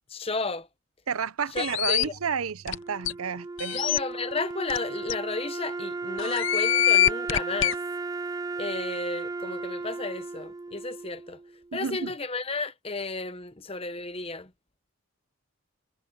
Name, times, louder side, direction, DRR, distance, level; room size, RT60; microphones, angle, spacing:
voice 1, 0.1-0.7 1.5-2.1 3.7-7.8 8.6-11.4 11.7-14.5, left 3 dB, 25° left, 1.0 m, -33 dB
voice 2, 1.1-3.8 11.7-12.1, right 6 dB, 90° right, 0.7 m, -31 dB
sound 1, 1.6-2.0 2.7-2.8 3.0-3.1 3.6-4.0 4.7-4.8 5.1-5.2 6.2-7.7, left 12 dB, 65° left, 0.7 m, -24 dB
Wind instrument woodwind instrument, 2.7-11.7, right 3 dB, 15° right, 0.3 m, -35 dB
head